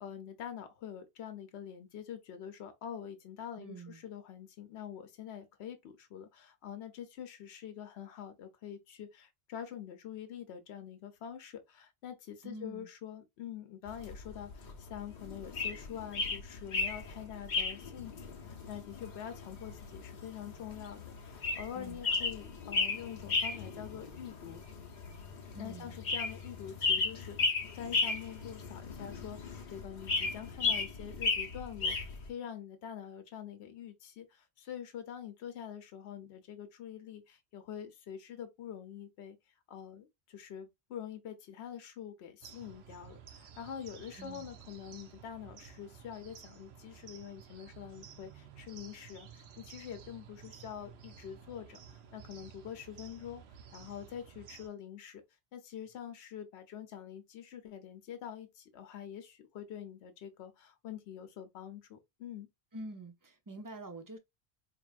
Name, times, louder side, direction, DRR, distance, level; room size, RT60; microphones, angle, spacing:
voice 1, 0.0-24.6 25.6-39.4 39.7-53.4 53.7-55.2 55.5-62.5, left 9 dB, 75° left, 1.0 m, -45 dB
voice 2, 3.6-4.0 12.4-12.9 21.7-22.0 25.5-25.9 44.2-44.4 62.7-64.2, right 2 dB, 30° right, 0.4 m, -46 dB
sound 1, 13.9-32.3, left 3 dB, 45° left, 0.8 m, -36 dB
sound 2, 42.4-54.7, right 7 dB, 75° right, 0.9 m, -53 dB
4.4 x 2.8 x 2.3 m
omnidirectional pair, 1.1 m